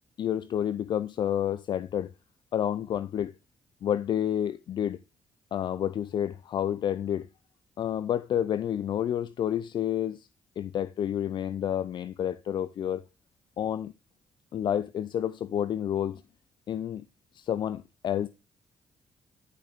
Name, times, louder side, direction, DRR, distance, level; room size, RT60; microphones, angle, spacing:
voice 1, 0.2-2.1 2.5-3.3 3.8-5.0 5.5-7.3 7.8-10.3 10.6-13.0 13.6-13.9 14.5-16.2 16.7-17.0 17.3-18.3, left 10 dB, 60° left, 0.5 m, -29 dB
11.0 x 6.0 x 3.5 m
supercardioid pair, 65°, 9 cm